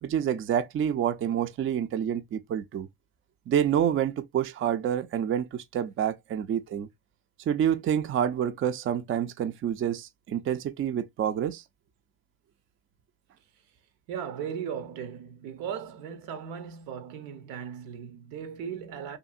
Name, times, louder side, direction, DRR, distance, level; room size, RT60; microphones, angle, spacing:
voice 1, 0.0-2.9 3.5-6.9 7.5-11.6, right 9 dB, 35° right, 0.4 m, -28 dB
voice 2, 14.1-19.2, right 8 dB, 85° right, 0.7 m, -37 dB
2.7 x 2.6 x 2.4 m
supercardioid pair, 75°, 35 cm